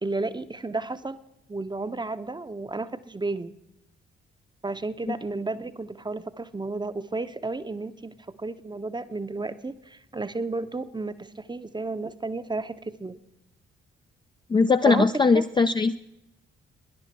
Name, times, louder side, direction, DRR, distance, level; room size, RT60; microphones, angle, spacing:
voice 1, 0.0-1.2 1.5-3.5 4.6-13.2 14.8-15.1 15.3-15.4, right 3 dB, 15° right, 13 dB, 0.7 m, -32 dB
voice 2, 14.5-16.0, left 4 dB, 15° left, 8 dB, 0.4 m, -20 dB
18.5 x 10.5 x 4.3 m, 0.86 s
figure-of-eight pair, 40°, 30 cm